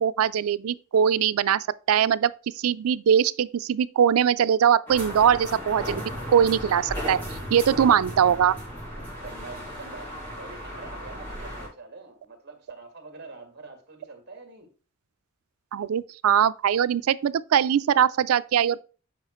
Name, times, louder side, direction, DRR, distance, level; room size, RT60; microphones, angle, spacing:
voice 1, 0.0-6.0 6.3-7.2 7.5-8.6 15.7-18.8, right 8 dB, 90° right, 0.4 m, -21 dB
sound 1, 4.9-11.7, equal, 10° left, 3.5 m, -35 dB
voice 2, 8.9-14.7, right 3 dB, 50° right, 1.7 m, -45 dB
8.6 x 4.8 x 3.0 m
head